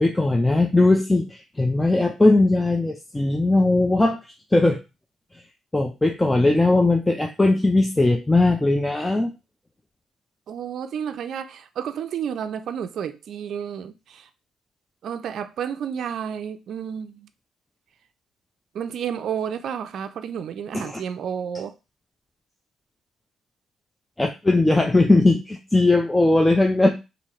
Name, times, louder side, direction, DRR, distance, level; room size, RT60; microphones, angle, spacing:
voice 1, 0.0-4.2 4.5-4.8 5.7-9.3 20.7-21.0 24.2-26.9, left 2 dB, 10° left, 0.4 m, -19 dB
voice 2, 10.5-14.3 15.0-17.3 18.7-21.8, right 8 dB, 65° right, 0.3 m, -31 dB
2.9 x 2.7 x 4.3 m
cardioid pair, 90°, 0 cm